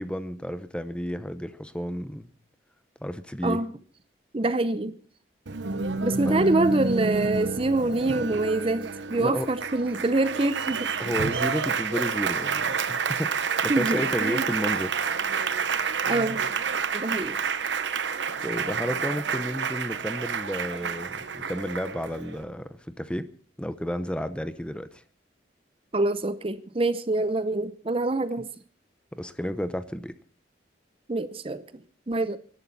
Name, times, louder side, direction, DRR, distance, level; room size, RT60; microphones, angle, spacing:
voice 1, 0.0-2.3 3.0-3.6 6.2-6.4 9.2-9.5 11.0-15.0 18.4-23.3 23.6-24.9 29.1-30.1, equal, 5° left, 0.7 m, -32 dB
voice 2, 4.3-5.0 6.0-10.9 13.7-14.4 16.1-16.4 16.9-17.4 25.9-28.5 31.1-31.6 32.1-32.4, right 2 dB, 30° right, 0.6 m, -25 dB
Applause, 5.5-22.4, right 5 dB, 80° right, 1.0 m, -29 dB
24.5 x 11.5 x 4.1 m
head